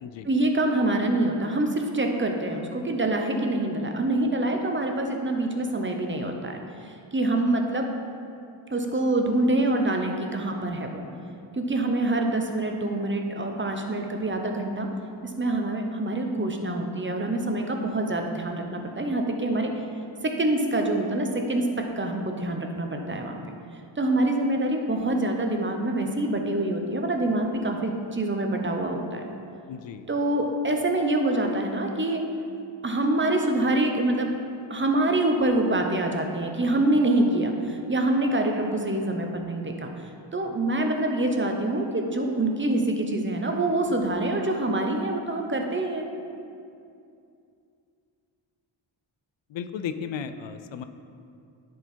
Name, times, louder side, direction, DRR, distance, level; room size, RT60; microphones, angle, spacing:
voice 1, 0.2-7.9 8.7-11.0 11.5-14.9 15.2-19.7 20.2-21.7 22.0-23.3 24.0-29.2 30.1-32.2 32.8-34.3 34.7-46.1, right 2 dB, 25° right, 3 dB, 0.9 m, -25 dB
voice 2, 29.7-30.1 49.5-50.8, left 7 dB, 70° left, 10 dB, 0.6 m, -35 dB
10.0 x 4.8 x 4.5 m, 2.5 s
cardioid pair, 70°, 46 cm